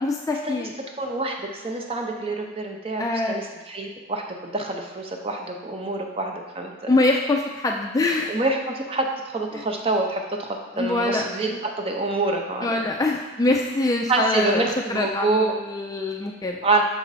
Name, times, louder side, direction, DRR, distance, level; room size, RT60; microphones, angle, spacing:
voice 1, 0.0-0.7 3.0-3.4 6.9-8.4 9.5-9.6 10.7-11.3 12.6-16.6, left 2 dB, 15° left, 1 dB, 0.3 m, -24 dB
voice 2, 1.0-6.9 8.3-12.8 14.1-15.6 16.6-16.8, right 2 dB, 25° right, 2 dB, 0.6 m, -26 dB
6.1 x 4.3 x 4.0 m, 1.2 s
head